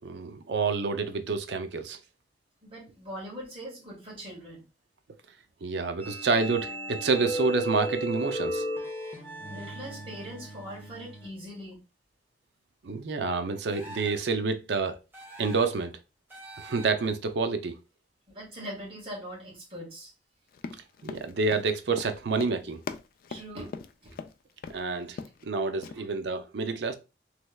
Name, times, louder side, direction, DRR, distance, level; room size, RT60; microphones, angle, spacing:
voice 1, 0.0-2.0 5.6-8.6 12.8-15.0 15.4-16.0 16.6-17.8 21.0-22.8 24.7-25.2 25.4-26.9, right 4 dB, 70° right, 0.5 m, -28 dB
voice 2, 2.6-4.6 9.5-11.8 18.3-20.1 23.3-23.8 24.0-24.1 25.9-26.0, equal, 35° right, 1.7 m, -41 dB
sound 1, 6.0-11.3, right 1 dB, 15° left, 0.9 m, -35 dB
sound 2, 13.6-14.3 15.1-15.8 16.3-17.1, right 1 dB, 10° right, 1.1 m, -46 dB
Run, 20.5-24.3 24.6-24.8 25.1-25.5 25.8-25.9, left 5 dB, 55° left, 0.3 m, -40 dB
3.3 x 3.1 x 2.2 m
head